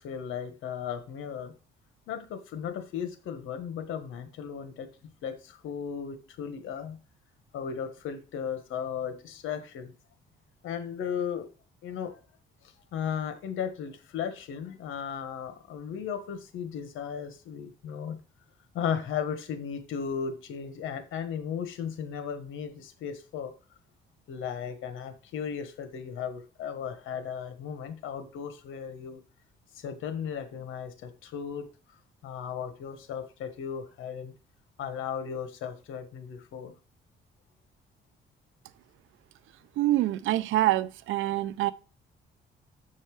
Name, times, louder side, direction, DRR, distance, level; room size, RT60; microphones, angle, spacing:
voice 1, 0.0-1.5 2.1-4.9 5.2-7.0 7.5-9.9 10.6-11.5 11.8-12.2 12.6-18.2 18.7-23.5 24.3-29.2 29.7-31.7 32.2-34.3 34.8-36.7, left 7 dB, 85° left, 1.4 m, -36 dB
voice 2, 39.8-41.7, right 15 dB, 85° right, 0.6 m, -26 dB
7.6 x 5.7 x 4.8 m
cardioid pair, 90°, 20 cm